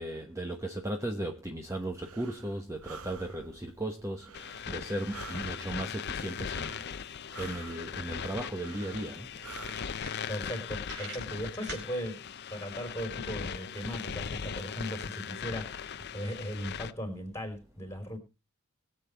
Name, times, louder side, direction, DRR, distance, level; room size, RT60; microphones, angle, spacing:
voice 1, 0.0-9.3, right 1 dB, 15° right, 1.1 m, -36 dB
Breathing, 1.6-10.0, right 4 dB, 90° right, 1.1 m, -50 dB
sound 1, 4.3-16.9, left 7 dB, 50° left, 0.6 m, -39 dB
sound 2, 9.9-10.6 10.8-11.9, right 3 dB, 55° right, 4.8 m, -43 dB
voice 2, 10.3-18.2, equal, 15° left, 4.2 m, -38 dB
22.0 x 7.9 x 3.5 m
head